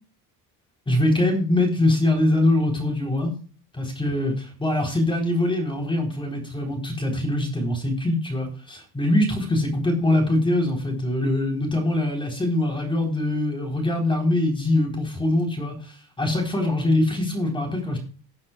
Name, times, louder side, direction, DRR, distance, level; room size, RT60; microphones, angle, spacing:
voice 1, 0.9-3.3 3.8-18.0, left 1 dB, 10° left, 1 dB, 4.0 m, -23 dB
19.5 x 9.7 x 2.4 m, 0.40 s
cardioid pair, 155°, 39 cm